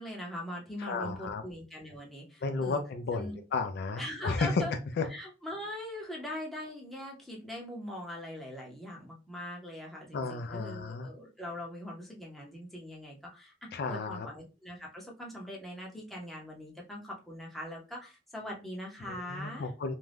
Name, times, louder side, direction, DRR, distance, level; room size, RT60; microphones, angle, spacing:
voice 1, 0.0-2.8 3.1-3.4 4.0-4.7 5.0-19.7, left 1 dB, ahead, -3 dB, 0.7 m, -41 dB
voice 2, 0.8-1.4 2.4-4.6 5.0-5.1 10.1-11.1 13.7-14.3 19.1-19.9, left 4 dB, 55° left, 6 dB, 0.4 m, -33 dB
2.5 x 2.2 x 3.3 m, 0.30 s
head